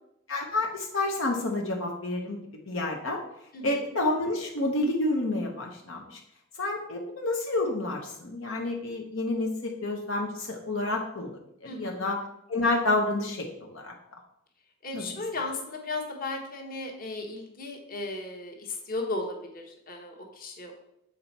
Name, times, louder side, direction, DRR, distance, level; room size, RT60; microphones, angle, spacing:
voice 1, 0.3-2.4 2.7-3.2 3.6-6.2 6.6-11.3 11.7-12.2 12.5-13.9 14.9-15.0, left 2 dB, 75° left, 0 dB, 0.9 m, -29 dB
voice 2, 11.6-12.1 14.8-20.7, left 2 dB, 45° left, 1 dB, 1.2 m, -35 dB
7.5 x 4.3 x 4.1 m, 0.79 s
head